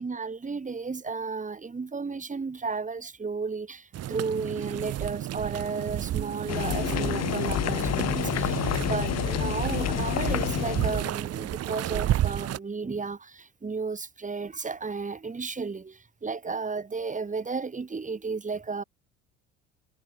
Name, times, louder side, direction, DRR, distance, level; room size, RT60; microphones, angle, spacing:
voice 1, 0.0-18.8, right 4 dB, 25° right, 5.7 m, -33 dB
sound 1, 3.9-12.6, right 13 dB, 50° right, 1.5 m, -31 dB
sound 2, 6.5-11.1, left 12 dB, 55° left, 3.8 m, -29 dB
hypercardioid pair, 65°, 32 cm